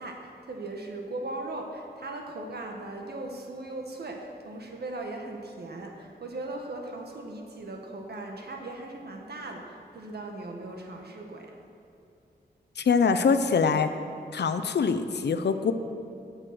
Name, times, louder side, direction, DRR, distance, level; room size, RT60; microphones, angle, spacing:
voice 1, 0.0-11.5, right 2 dB, 65° right, 1 dB, 1.8 m, -38 dB
voice 2, 12.8-13.9 14.3-15.7, left 5 dB, 75° left, 9 dB, 0.7 m, -24 dB
17.0 x 6.7 x 6.2 m, 2.6 s
wide cardioid pair, 110°, 18 cm